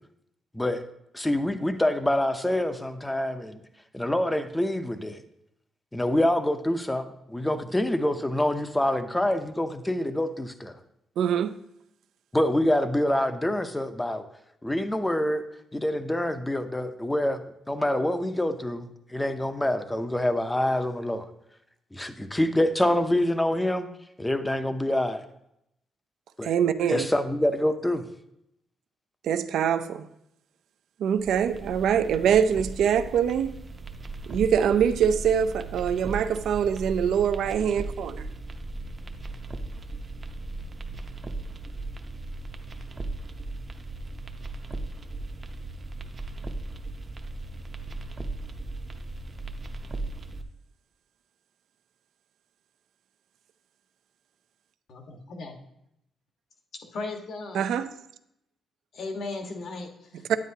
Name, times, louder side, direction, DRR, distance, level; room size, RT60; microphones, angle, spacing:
voice 1, 1.1-3.6 3.9-5.2 5.9-10.8 12.3-14.3 14.6-15.4 15.7-17.4 17.7-21.3 21.9-23.9 24.2-25.2 26.4-26.5 26.9-28.1, left 1 dB, 10° left, 0.6 m, -26 dB
voice 2, 11.2-11.5 26.4-27.1 29.2-30.1 31.0-33.6 34.3-38.3 57.5-57.9, right 8 dB, 80° right, 0.5 m, -24 dB
sound 1, 31.2-50.4, right 2 dB, 25° right, 0.7 m, -37 dB
voice 3, 54.9-55.5 56.9-57.7 58.9-60.4, left 3 dB, 60° left, 1.4 m, -37 dB
10.0 x 9.4 x 2.8 m
cardioid pair, 145°, 0 cm